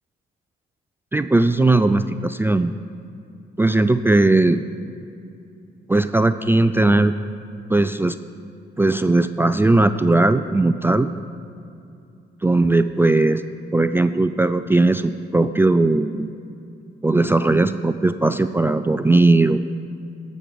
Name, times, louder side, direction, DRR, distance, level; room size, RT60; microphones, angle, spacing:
voice 1, 1.1-2.7 3.6-4.6 5.9-7.1 7.7-8.2 8.8-11.1 12.4-13.4 13.7-16.3 17.0-19.6, right 2 dB, 10° right, 10 dB, 0.3 m, -18 dB
16.5 x 6.4 x 5.1 m, 2.6 s
cardioid pair, 90°, 20 cm